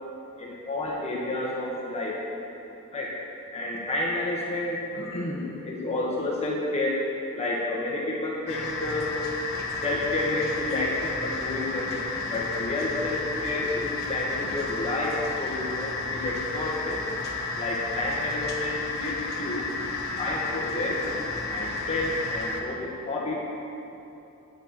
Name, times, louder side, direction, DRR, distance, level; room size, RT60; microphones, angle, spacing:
voice 1, 0.4-2.2 2.9-3.1 3.5-7.0 7.3-9.4 9.8-12.0 12.3-17.0 17.6-19.7 20.2-21.0 21.5-23.4, left 2 dB, 30° left, -4 dB, 1.8 m, -30 dB
sound 1, 8.5-22.6, left 3 dB, 50° left, 1.4 m, -32 dB
19.5 x 8.9 x 4.4 m, 2.8 s
head